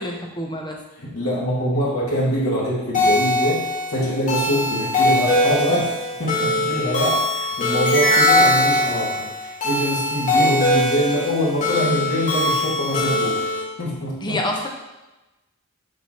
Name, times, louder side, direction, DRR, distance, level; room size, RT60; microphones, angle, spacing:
voice 1, 0.0-0.8 14.2-14.7, left 1 dB, 20° left, 1 dB, 1.0 m, -27 dB
voice 2, 1.0-5.9 6.2-13.4 13.8-14.4, equal, 80° left, -6 dB, 2.3 m, -24 dB
sound 1, 2.9-13.6, left 1 dB, 40° left, 1.8 m, -21 dB
7.4 x 3.6 x 5.7 m, 1.0 s
head